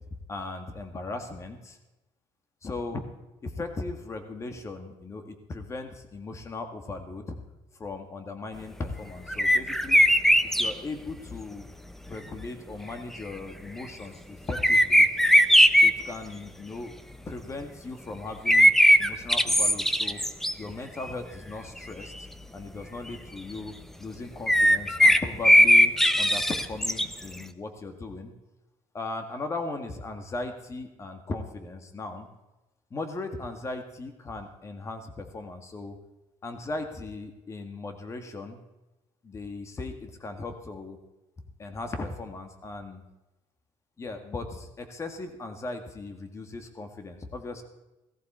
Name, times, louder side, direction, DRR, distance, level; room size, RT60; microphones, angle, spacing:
voice 1, 0.3-1.8 2.6-3.0 3.4-7.4 7.7-10.0 10.6-11.7 12.1-15.1 15.8-16.9 17.3-18.7 19.0-20.2 20.6-22.1 22.5-28.3 28.9-32.3 32.9-36.0 36.4-38.6 39.2-41.0 41.6-43.0 44.0-47.6, left 3 dB, 25° left, 6 dB, 1.8 m, -37 dB
sound 1, 9.3-10.7 14.5-15.9 18.5-20.5 21.1-21.2 21.8-21.9 22.0-22.1 24.5-27.1, equal, 5° left, 0.7 m, -19 dB
17.5 x 14.5 x 4.4 m, 1.0 s
cardioid pair, 130°, 11 cm